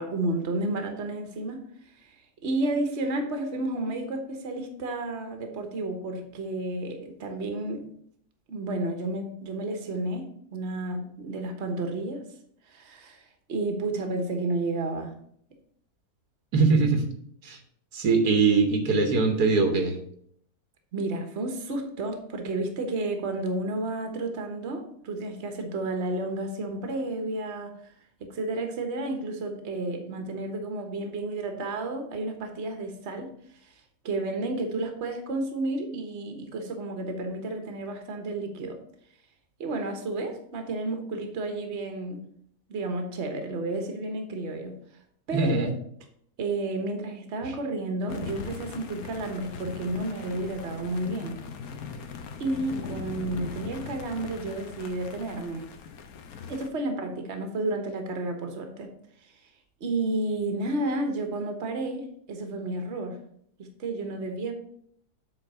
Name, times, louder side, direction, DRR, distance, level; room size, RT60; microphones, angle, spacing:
voice 1, 0.0-1.6 2.0-2.2 2.4-7.8 8.5-12.2 12.7-13.2 13.5-15.1 20.9-27.7 28.2-33.3 34.0-38.8 39.6-42.2 42.7-44.7 45.3-45.7 46.4-51.4 52.4-55.7 56.5-58.9 59.8-63.2 63.6-64.5, right 2 dB, 50° right, 5 dB, 1.4 m, -31 dB
voice 2, 16.5-17.1 17.4-17.6 17.9-20.0 45.3-45.7 47.4-47.5 48.2-48.3, right 4 dB, 85° right, 5 dB, 1.7 m, -22 dB
sound 1, 48.1-56.7, left 6 dB, 70° left, 1.3 m, -40 dB
7.6 x 4.0 x 6.7 m, 0.66 s
omnidirectional pair, 1.6 m